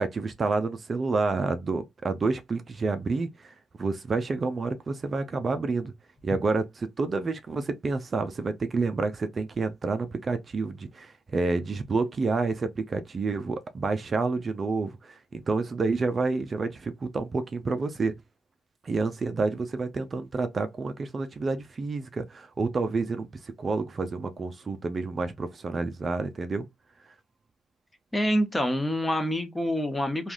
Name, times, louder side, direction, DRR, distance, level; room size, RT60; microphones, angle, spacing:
voice 1, 0.0-5.9 6.2-18.2 18.8-26.7 27.1-27.2, right 3 dB, 35° right, 0.4 m, -29 dB
voice 2, 28.1-30.3, equal, 10° left, 0.8 m, -26 dB
3.2 x 2.3 x 2.5 m
cardioid pair, 90°, 0 cm